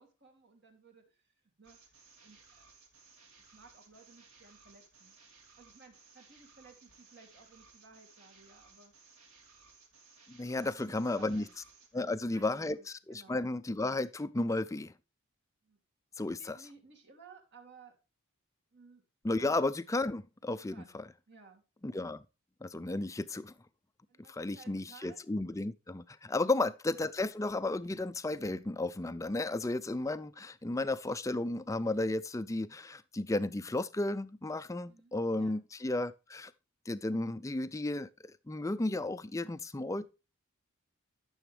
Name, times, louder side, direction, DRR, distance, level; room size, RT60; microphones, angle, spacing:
voice 1, 0.0-1.3 1.6-1.8 2.2-2.7 3.4-5.1 5.6-8.9 10.6-11.5 11.9-13.5 15.6-15.8 16.4-17.9 18.7-19.0 19.4-19.5 20.7-21.6 24.1-25.2 26.4-26.5 34.8-35.6, right 4 dB, 50° right, 2.8 m, -58 dB
sound 1, 1.6-12.0, right 4 dB, 75° right, 3.9 m, -60 dB
voice 2, 10.3-11.5 11.9-14.9 16.2-16.6 19.2-21.1 21.8-22.2 22.6-23.5 24.3-36.5 36.9-40.1, left 2 dB, 15° left, 0.4 m, -33 dB
12.5 x 7.0 x 3.4 m
head